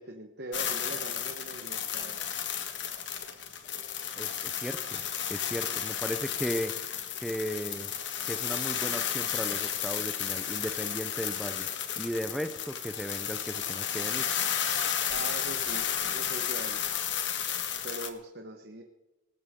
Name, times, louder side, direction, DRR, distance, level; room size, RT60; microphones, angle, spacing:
voice 1, 0.0-2.2 15.1-16.8 17.8-18.8, right 1 dB, 55° right, 4 dB, 1.3 m, -41 dB
sound 1, 0.5-18.1, left 9 dB, 60° left, 1.7 m, -33 dB
voice 2, 4.2-6.8 7.2-7.9 8.3-11.7 12.0-14.3, equal, ahead, 7 dB, 0.7 m, -36 dB
20.0 x 18.0 x 3.8 m, 1.1 s
head